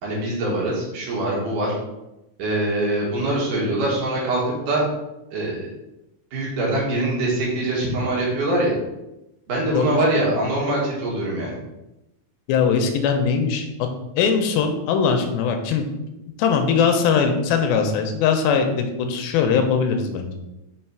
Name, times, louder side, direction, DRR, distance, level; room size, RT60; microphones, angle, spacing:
voice 1, 0.0-1.7 2.4-4.8 5.3-5.7 6.3-8.7 9.5-11.6, right 1 dB, 65° right, -4 dB, 3.0 m, -23 dB
voice 2, 12.5-13.7 14.2-15.8 16.4-20.3, left 6 dB, 90° left, 5 dB, 2.6 m, -20 dB
6.4 x 4.1 x 4.5 m, 0.94 s
omnidirectional pair, 4.3 m